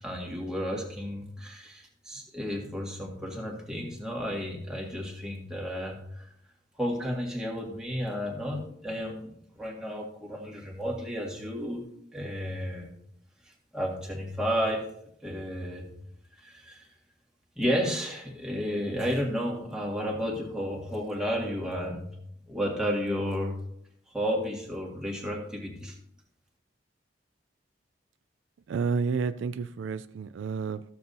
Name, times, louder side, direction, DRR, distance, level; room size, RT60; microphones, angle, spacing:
voice 1, 0.0-6.2 6.8-11.8 12.1-12.9 13.7-14.8 15.2-15.9 16.4-16.9 17.6-22.1 22.5-23.5 24.1-25.9, equal, 5° right, 1.8 m, -32 dB
voice 2, 28.7-30.8, right 5 dB, 80° right, 0.4 m, -30 dB
14.0 x 7.0 x 2.7 m
head